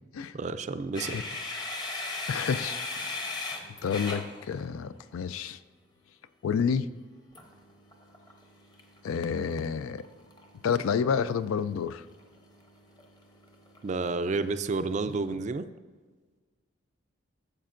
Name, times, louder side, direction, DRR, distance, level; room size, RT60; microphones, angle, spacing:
voice 1, 0.3-1.4 13.8-15.7, right 3 dB, 35° right, 12 dB, 0.3 m, -30 dB
sound 1, 0.9-5.0 7.3-15.3, left 3 dB, 20° left, 0.8 m, -40 dB
voice 2, 2.3-3.4 3.8-5.6 6.4-6.9 9.0-10.0 10.6-12.1, left 6 dB, 85° left, 14 dB, 0.4 m, -30 dB
13.0 x 7.6 x 2.5 m, 1.4 s
head